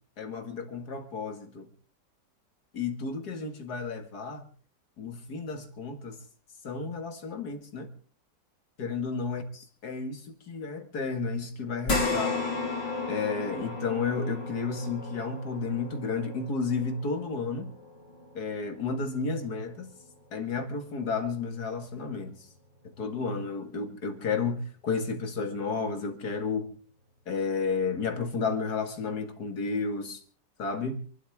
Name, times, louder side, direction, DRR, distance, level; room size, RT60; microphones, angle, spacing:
voice 1, 0.2-1.7 2.7-4.5 5.0-6.2 6.6-7.9 8.8-9.4 9.8-12.4 13.1-17.7 18.3-19.9 20.3-22.4 22.8-26.7 27.3-30.2 30.6-31.0, left 4 dB, 60° left, 2.5 m, -32 dB
sound 1, 11.9-20.5 20.9-21.0 22.5-22.6, left 3 dB, 85° left, 4.9 m, -35 dB
27.0 x 12.5 x 3.6 m
omnidirectional pair, 1.9 m